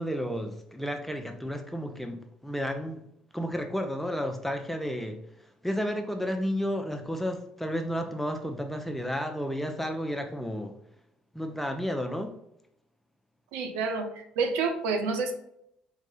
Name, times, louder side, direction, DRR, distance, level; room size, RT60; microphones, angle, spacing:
voice 1, 0.0-3.1 3.3-10.7 11.3-12.4, equal, 5° left, 0.6 m, -32 dB
voice 2, 13.5-15.3, right 4 dB, 70° right, 0.6 m, -29 dB
4.6 x 2.7 x 3.8 m
hypercardioid pair, 50°, 4 cm